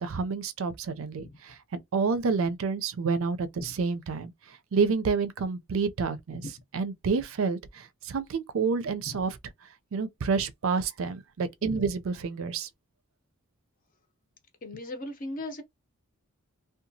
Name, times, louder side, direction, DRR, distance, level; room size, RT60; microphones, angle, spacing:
voice 1, 0.0-6.4 6.7-9.4 9.9-12.7, right 5 dB, 65° right, 0.4 m, -29 dB
voice 2, 14.6-15.6, left 2 dB, 40° left, 0.6 m, -37 dB
2.8 x 2.3 x 2.6 m
head